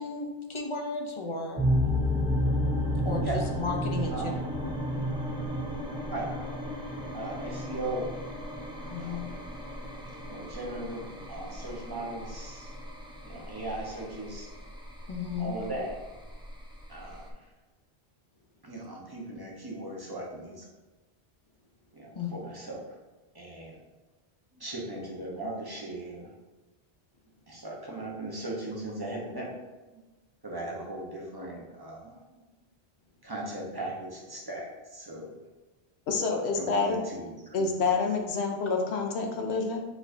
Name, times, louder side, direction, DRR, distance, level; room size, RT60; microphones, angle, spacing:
voice 1, 0.0-1.6 3.0-4.4 8.9-9.3 15.1-15.6 22.1-22.4, left 4 dB, 35° left, 1 dB, 0.6 m, -34 dB
sound 1, 1.6-17.3, equal, 10° right, 0.3 m, -33 dB
voice 2, 4.1-4.5 6.1-6.3 7.1-8.1 9.0-9.4 10.3-12.7 13.2-14.5 15.4-16.0 16.9-17.3 18.6-20.7 21.9-22.8 23.3-23.8 24.5-26.3 27.5-29.5 29.9-30.0 30.4-32.2 33.2-35.4 36.5-37.7, right 1 dB, 25° right, -3 dB, 0.8 m, -38 dB
voice 3, 36.1-37.0 37.5-39.8, left 4 dB, 90° left, 3 dB, 1.0 m, -28 dB
4.6 x 4.5 x 2.6 m, 1.2 s
omnidirectional pair, 1.1 m